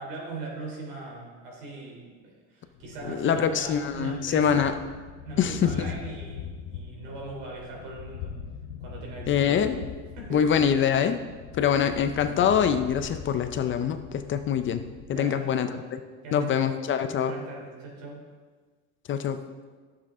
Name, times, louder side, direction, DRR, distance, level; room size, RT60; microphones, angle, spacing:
voice 1, 0.0-4.7 5.2-8.4 8.8-9.5 10.1-10.4 15.1-15.5 16.2-16.8 17.2-18.2, right 3 dB, 85° right, -1 dB, 3.2 m, -40 dB
Thunder, 2.7-15.4, left 8 dB, 85° left, 0.8 m, -41 dB
voice 2, 3.1-4.7 5.4-5.7 9.3-9.8 10.3-11.2 11.5-14.8 15.1-16.0 16.3-17.3 19.1-19.4, left 8 dB, 35° left, 9 dB, 0.5 m, -24 dB
11.5 x 7.3 x 3.6 m, 1.4 s
cardioid pair, 140°, 37 cm